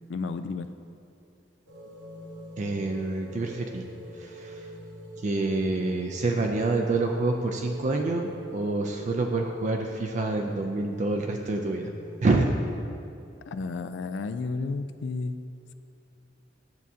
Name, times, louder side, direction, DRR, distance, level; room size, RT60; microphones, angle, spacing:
voice 1, 0.1-0.7 13.5-15.3, left 4 dB, 65° left, 10 dB, 0.3 m, -32 dB
sound 1, 1.7-12.7, right 2 dB, 70° right, 1.1 m, -45 dB
voice 2, 2.6-3.9 4.1-4.7 5.2-11.9 12.2-12.6, right 2 dB, 40° right, 2 dB, 0.4 m, -27 dB
10.5 x 7.4 x 2.8 m, 2.6 s
head